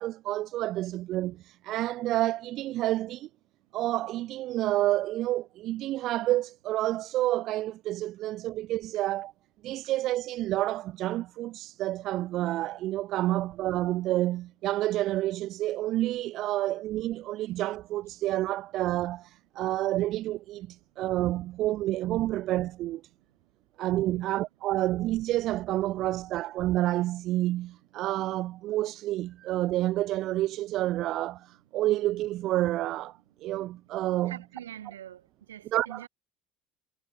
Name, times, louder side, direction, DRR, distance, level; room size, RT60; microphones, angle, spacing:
voice 1, 0.0-3.3 3.7-9.3 9.6-23.0 23.8-34.4 35.7-36.0, right 15 dB, 50° right, 1.2 m, -29 dB
voice 2, 24.1-24.4 34.3-36.1, right 11 dB, 75° right, 3.0 m, -45 dB
figure-of-eight pair, 65°, 0 cm